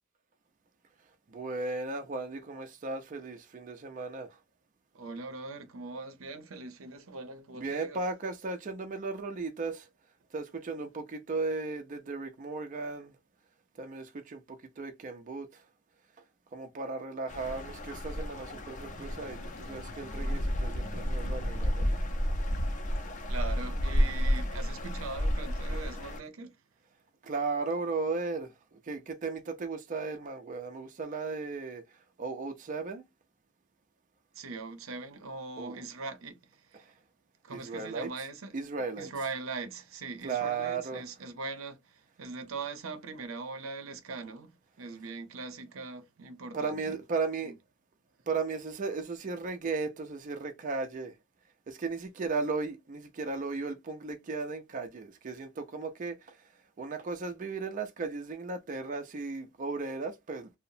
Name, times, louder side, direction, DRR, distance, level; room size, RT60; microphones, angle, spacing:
voice 1, 1.3-4.4 7.5-9.9 10.3-13.2 13.8-15.6 16.5-21.9 27.2-33.0 35.6-35.8 36.7-36.9 37.5-38.3 38.5-39.3 40.2-41.3 46.5-47.5 48.3-51.2 51.7-60.5, right 4 dB, 40° right, 0.4 m, -36 dB
voice 2, 4.9-8.0 23.3-26.6 34.3-36.8 37.4-38.5 39.0-47.0 47.5-47.6, right 4 dB, 85° right, 0.6 m, -41 dB
sound 1, 17.3-26.2, equal, 40° left, 0.6 m, -31 dB
2.8 x 2.0 x 2.6 m
head